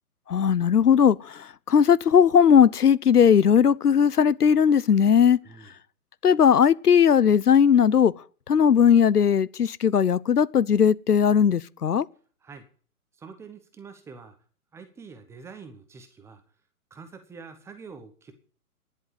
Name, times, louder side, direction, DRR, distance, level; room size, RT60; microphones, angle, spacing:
voice 1, 0.3-5.4 6.2-8.1 8.5-12.1, left 7 dB, 85° left, 0.8 m, -18 dB
voice 2, 5.4-5.7 12.4-12.6 13.2-14.4 14.7-16.4 16.9-18.3, right 5 dB, 5° right, 0.9 m, -45 dB
10.5 x 7.9 x 9.1 m
figure-of-eight pair, 135°, 45 cm